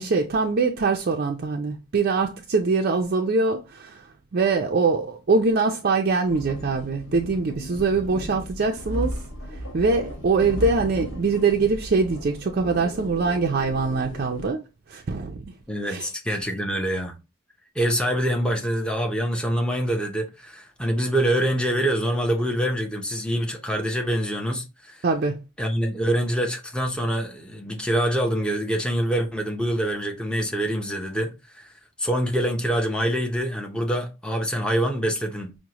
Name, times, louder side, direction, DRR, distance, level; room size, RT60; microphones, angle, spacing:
voice 1, 0.0-4.1 4.3-9.2 9.7-14.6 14.9-15.4 15.8-16.1 25.0-25.4, right 4 dB, 45° right, 0.4 m, -23 dB
sound 1, 6.3-14.5, equal, 70° left, 1.3 m, -35 dB
voice 2, 15.7-17.1 17.7-25.0 25.6-31.7 32.0-35.6, equal, 5° left, 0.6 m, -25 dB
6.0 x 2.1 x 2.9 m
head